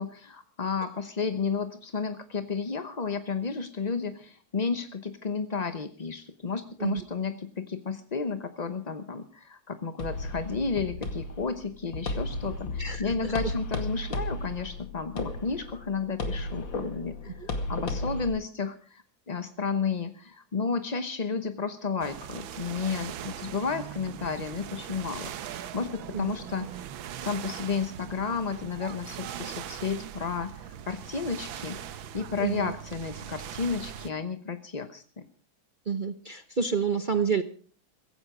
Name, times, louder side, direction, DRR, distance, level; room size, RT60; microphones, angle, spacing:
voice 1, 0.0-26.8 27.2-35.2, left 5 dB, 40° left, 10 dB, 0.6 m, -32 dB
sound 1, 10.0-18.3, left 2 dB, 70° left, 2.9 m, -34 dB
voice 2, 12.8-13.3 17.4-17.5 26.1-26.3 32.4-32.7 35.9-37.4, right 6 dB, 45° right, 9 dB, 0.6 m, -29 dB
sound 2, 22.0-34.1, right 10 dB, 75° right, 1.7 m, -40 dB
16.0 x 16.0 x 4.9 m, 0.41 s
omnidirectional pair, 2.2 m